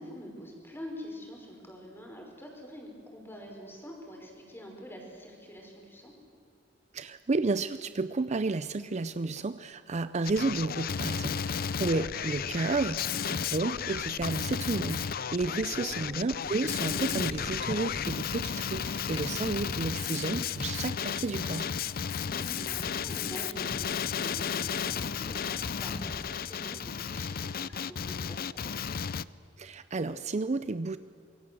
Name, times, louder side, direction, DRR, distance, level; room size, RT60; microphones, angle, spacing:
voice 1, 0.0-6.1 15.4-16.2 22.2-28.8, equal, 10° left, 1 dB, 5.4 m, -46 dB
voice 2, 6.9-21.7 29.6-31.0, right 3 dB, 35° right, 13 dB, 0.5 m, -32 dB
Male speech man speaking, 10.2-29.2, left 7 dB, 50° left, 0.5 m, -33 dB
Wind / Ocean / Boat Water vehicle, 16.4-26.8, left 1 dB, 35° left, 1.3 m, -45 dB
26.5 x 22.5 x 7.8 m, 2.4 s
head